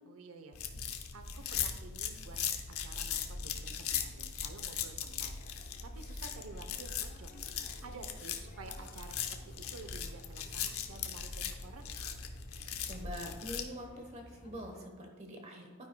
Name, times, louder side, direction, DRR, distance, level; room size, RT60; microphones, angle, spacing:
voice 1, 0.0-0.6 1.1-2.4 2.7-7.3 7.8-11.9, right 3 dB, 80° right, 7 dB, 0.8 m, -51 dB
sound 1, 0.5-13.6, left 7 dB, 80° left, 0.9 m, -39 dB
sound 2, 4.9-14.9, left 1 dB, 35° left, 0.7 m, -57 dB
voice 2, 12.8-15.9, equal, 30° right, 2 dB, 1.0 m, -45 dB
11.5 x 9.7 x 2.2 m, 1.4 s
head